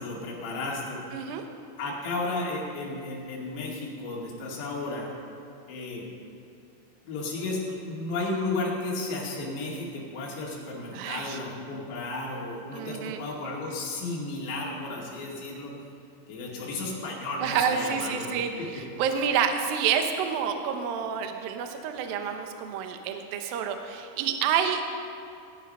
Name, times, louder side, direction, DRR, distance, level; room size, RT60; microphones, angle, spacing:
voice 1, 0.0-1.0 1.8-5.1 5.7-6.0 7.0-15.7 16.3-18.8, left 2 dB, 65° left, -4 dB, 4.3 m, -33 dB
voice 2, 1.1-1.4 10.9-11.4 12.7-13.2 17.4-24.9, right 7 dB, 85° right, 6 dB, 2.0 m, -28 dB
19.5 x 9.5 x 5.5 m, 2.5 s
omnidirectional pair, 5.7 m